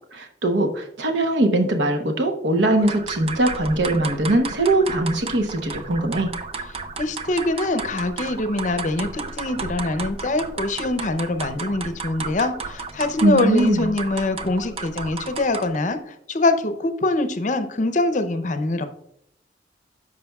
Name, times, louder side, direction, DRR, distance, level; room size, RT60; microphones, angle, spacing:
voice 1, 0.1-6.3 13.2-13.9, right 2 dB, 75° right, 5 dB, 1.0 m, -21 dB
sound 1, 2.7-15.9, right 4 dB, 30° right, 0.4 m, -33 dB
voice 2, 7.0-16.0 16.3-18.9, left 2 dB, 40° left, 10 dB, 0.6 m, -24 dB
13.0 x 5.1 x 2.3 m, 0.74 s
head